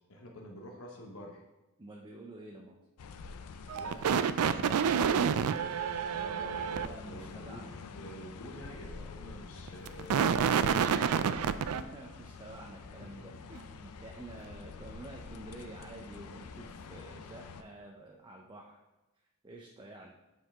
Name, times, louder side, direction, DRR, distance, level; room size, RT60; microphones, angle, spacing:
voice 1, 0.0-1.4 3.7-5.3 7.0-11.3 13.0-13.4 14.3-14.5, equal, 65° left, 1 dB, 1.0 m, -48 dB
voice 2, 1.8-2.8 6.0-7.8 11.6-18.8 19.4-20.2, right 1 dB, 20° right, 0 dB, 0.5 m, -49 dB
sound 1, 3.0-17.6, left 4 dB, 85° left, 0.5 m, -48 dB
sound 2, 3.7-6.9 9.7-11.8, right 7 dB, 75° right, 0.3 m, -28 dB
7.7 x 4.7 x 3.5 m, 1.0 s
head